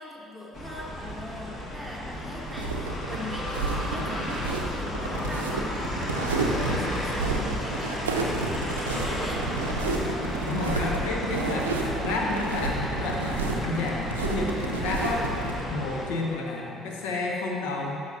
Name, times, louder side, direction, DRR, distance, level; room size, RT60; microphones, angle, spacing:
voice 1, 0.0-9.4, left 1 dB, 5° left, -3 dB, 1.3 m, -41 dB
sound 1, 0.5-16.1, left 1 dB, 45° left, 1.4 m, -33 dB
sound 2, 2.5-15.6, right 3 dB, 80° right, 0.5 m, -30 dB
voice 2, 10.5-15.3 15.7-18.0, left 2 dB, 65° left, 0 dB, 0.9 m, -30 dB
12.5 x 5.6 x 2.7 m, 2.6 s
figure-of-eight pair, 50°, 0 cm